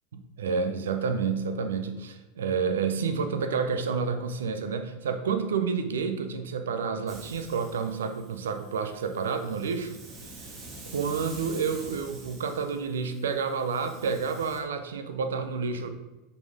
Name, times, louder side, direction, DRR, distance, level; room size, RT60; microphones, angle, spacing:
voice 1, 0.1-10.0 10.9-15.9, right 5 dB, 80° right, 8 dB, 0.6 m, -29 dB
Hiss, 7.1-14.6, right 2 dB, 35° right, 1.7 m, -46 dB
5.7 x 4.2 x 5.3 m, 1.1 s
hypercardioid pair, 85°, 0 cm